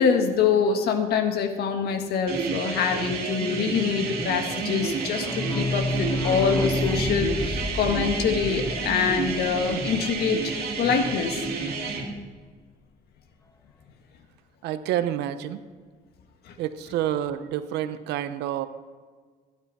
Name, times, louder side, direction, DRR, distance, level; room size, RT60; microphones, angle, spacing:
voice 1, 0.0-11.5 16.5-16.6, left 6 dB, 70° left, 5 dB, 1.8 m, -25 dB
sound 1, 2.3-12.0, right 4 dB, 65° right, 2.9 m, -30 dB
sound 2, 4.9-10.4 10.7-10.8 11.0-11.1 11.4-11.5, left 1 dB, 15° left, 0.7 m, -30 dB
voice 2, 14.6-15.6 16.6-18.7, right 11 dB, 85° right, 11 dB, 0.9 m, -28 dB
16.0 x 12.0 x 4.2 m, 1.5 s
cardioid pair, 110°, 17 cm